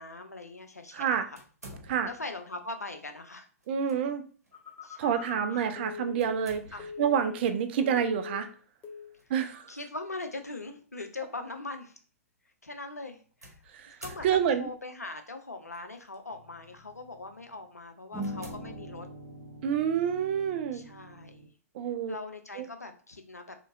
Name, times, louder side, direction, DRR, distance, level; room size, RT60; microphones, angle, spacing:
voice 1, 0.0-1.4 2.0-3.5 4.8-5.6 6.7-6.9 9.4-12.0 12.6-13.6 14.0-14.3 14.6-19.1 20.7-21.5 22.1-23.6, left 2 dB, 85° left, 7 dB, 0.5 m, -41 dB
voice 2, 0.9-1.3 1.9-2.1 3.7-4.2 5.0-6.6 7.0-8.5 9.3-9.7 13.9-14.0 14.2-14.7 19.6-20.8 21.7-22.1 22.6-22.7, right 8 dB, 45° right, 9 dB, 0.4 m, -28 dB
sound 1, 1.4-2.3 3.6-4.0 4.4-4.6 6.2-7.1 9.2-9.5 10.3-10.4 13.4-14.8 15.7-16.2 16.7-16.9 17.5-17.6 18.2-19.4, equal, 80° right, 0.8 m, -50 dB
Telephone, 4.5-7.6 7.8-8.5 8.8-9.1, left 6 dB, 20° left, 0.6 m, -42 dB
sound 2, 16.3-17.4 18.1-21.5, right 1 dB, 10° right, 1.0 m, -43 dB
2.9 x 2.6 x 2.5 m, 0.41 s
figure-of-eight pair, 110°, 8 cm